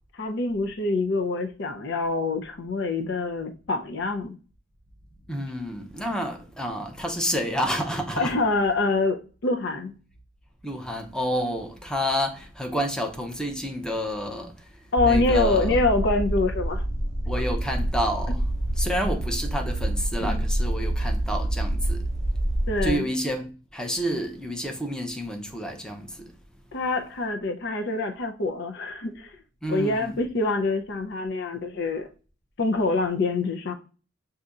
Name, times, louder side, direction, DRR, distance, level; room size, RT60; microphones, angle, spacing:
voice 1, 0.1-4.4 8.2-9.9 14.9-16.8 20.2-20.4 22.7-23.1 26.7-29.4 29.7-32.1 32.6-33.7, left 3 dB, 65° left, 0.6 m, -25 dB
voice 2, 5.3-8.3 10.6-14.7 15.0-15.8 17.3-18.4 18.8-22.1 22.8-26.3 29.6-30.2, equal, 5° left, 0.7 m, -29 dB
sound 1, 15.0-23.0, right 1 dB, 90° left, 1.5 m, -27 dB
6.6 x 2.7 x 2.4 m
head